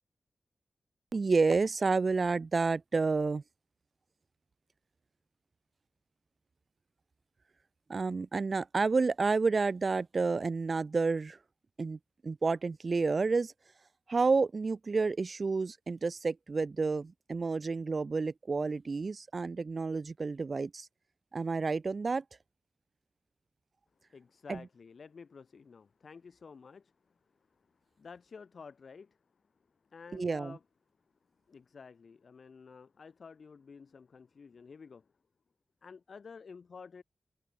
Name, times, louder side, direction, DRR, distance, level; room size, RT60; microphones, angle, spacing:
voice 1, 1.1-3.4 7.9-11.4 11.8-13.5 14.1-20.9 21.3-22.2 24.5-24.6 30.1-30.6, right 4 dB, 55° right, 2.2 m, -30 dB
voice 2, 24.1-27.1 27.6-27.7 28.0-29.2 29.9-30.6 31.5-35.1 35.8-37.0, left 5 dB, 70° left, 7.8 m, -51 dB
open air
cardioid pair, 55°, 0 cm